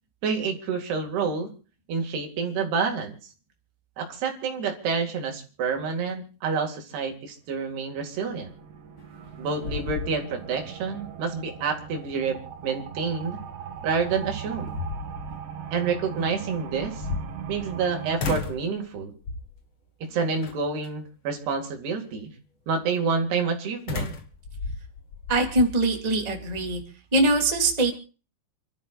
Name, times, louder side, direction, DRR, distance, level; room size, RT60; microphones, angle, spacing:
voice 1, 0.2-1.5 1.9-3.2 4.0-8.5 9.4-13.4 13.8-14.8 15.7-17.0 17.5-19.2 20.0-22.3 22.7-24.1, right 5 dB, 70° right, 2 dB, 4.2 m, -28 dB
sound 1, 7.7-18.2, right 8 dB, 85° right, 4.0 m, -39 dB
sound 2, 9.0-9.3 9.6-10.6 11.0-11.1 13.8-13.9 14.5-15.4 16.7-17.8 18.2-18.7 19.2-19.6 20.4-20.9 23.9-25.7, left 4 dB, 70° left, 1.2 m, -33 dB
voice 2, 25.3-26.8 27.1-27.9, right 2 dB, 10° right, 1 dB, 2.3 m, -22 dB
29.0 x 12.5 x 2.5 m, 0.37 s
omnidirectional pair, 4.9 m